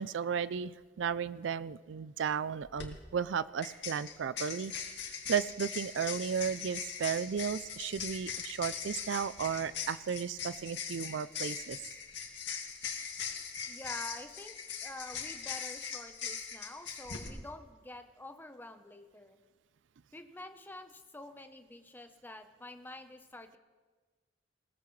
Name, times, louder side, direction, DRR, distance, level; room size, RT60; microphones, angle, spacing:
voice 1, 0.0-4.7 5.3-11.8, right 7 dB, 80° right, 17 dB, 0.4 m, -34 dB
sound 1, 2.6-2.9 3.6-17.3, left 7 dB, 70° left, 2.2 m, -40 dB
voice 2, 13.7-14.5 14.8-19.4 20.1-23.6, left 2 dB, 10° left, 7 dB, 0.8 m, -47 dB
20.0 x 17.5 x 3.2 m, 1.4 s
head